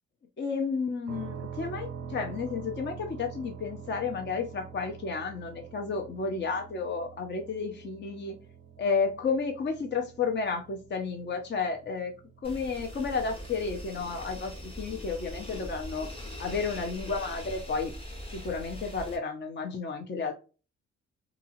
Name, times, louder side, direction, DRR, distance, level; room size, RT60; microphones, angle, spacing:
voice 1, 0.4-8.4 8.8-12.1 12.4-16.1 16.4-17.9 18.3-20.3, left 5 dB, 30° left, 4 dB, 0.7 m, -32 dB
sound 1, 1.1-14.8, right 7 dB, 90° right, 0.6 m, -46 dB
sound 2, 12.4-19.2, equal, 15° left, 1.3 m, -41 dB
2.8 x 2.6 x 2.5 m, 0.33 s
hypercardioid pair, 45°, 34 cm